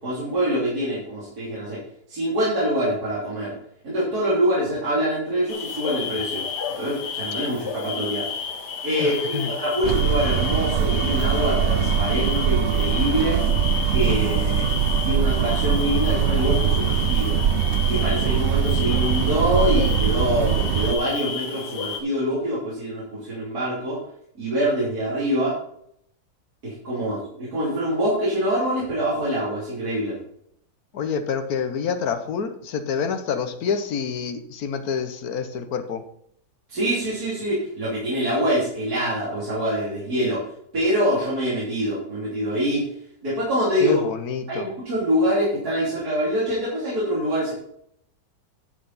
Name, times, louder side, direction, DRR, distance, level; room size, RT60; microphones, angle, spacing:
voice 1, 0.0-1.8 2.1-3.5 3.8-6.4 6.8-8.2 8.8-13.4 13.9-14.6 15.1-17.4 17.9-24.0 24.4-25.5 26.6-30.2 36.7-40.4 40.7-42.9 43.2-44.0 44.5-47.5, equal, 65° right, -8 dB, 3.6 m, -25 dB
sound 1, 5.5-22.0, left 6 dB, 80° left, 1.7 m, -32 dB
voice 2, 9.0-9.6 30.9-36.0 43.8-44.7, left 6 dB, 65° left, 8 dB, 1.4 m, -27 dB
sound 2, 9.8-20.9, right 8 dB, 90° right, 0.6 m, -22 dB
10.5 x 6.8 x 4.1 m, 0.69 s
omnidirectional pair, 1.8 m